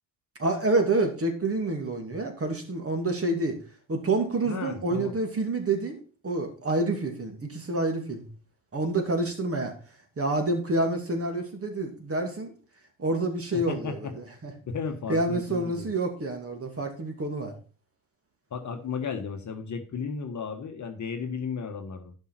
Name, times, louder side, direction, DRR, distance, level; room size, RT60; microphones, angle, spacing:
voice 1, 0.4-3.6 3.9-8.3 8.7-9.7 10.2-12.5 13.0-14.5 15.1-17.5, right 2 dB, 30° right, 5 dB, 2.6 m, -28 dB
voice 2, 4.5-5.1 13.5-14.1 14.6-15.9 18.5-22.1, left 5 dB, 40° left, 5 dB, 1.4 m, -34 dB
11.0 x 5.6 x 4.4 m, 0.37 s
figure-of-eight pair, 50°, 46 cm